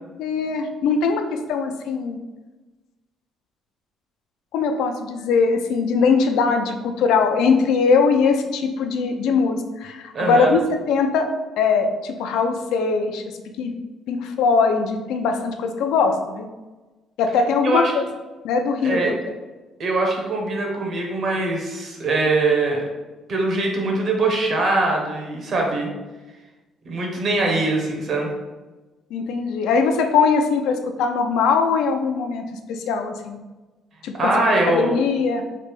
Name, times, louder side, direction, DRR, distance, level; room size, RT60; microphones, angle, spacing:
voice 1, 0.2-2.2 4.5-10.6 10.9-11.3 11.6-13.2 13.6-13.7 14.1-16.5 17.2-18.0 18.4-19.0 29.1-33.4 34.0-34.3 34.7-35.4, left 5 dB, 85° left, 5 dB, 0.4 m, -21 dB
voice 2, 10.1-10.6 17.6-17.8 18.8-19.1 19.8-22.8 23.3-25.9 26.9-28.3 34.2-34.9, right 2 dB, 50° right, 0 dB, 0.8 m, -22 dB
3.2 x 2.5 x 3.3 m, 1.2 s
cardioid pair, 115°, 0 cm